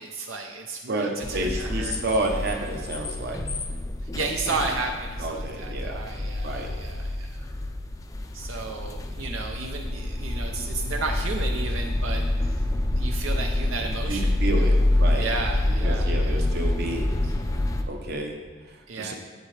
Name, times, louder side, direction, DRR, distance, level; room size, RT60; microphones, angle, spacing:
voice 1, 0.0-2.0 4.1-7.5 8.3-12.6 13.0-14.8 15.1-16.5 18.9-19.1, right 3 dB, 80° right, 3 dB, 0.6 m, -33 dB
voice 2, 0.9-3.4 5.2-6.0 6.4-6.7 14.1-15.3 15.8-17.1 17.9-18.4 19.0-19.1, right 2 dB, 50° right, 2 dB, 0.9 m, -30 dB
sound 1, 1.2-17.8, left 1 dB, 15° left, 0.4 m, -27 dB
8.0 x 7.4 x 3.3 m, 1.4 s
head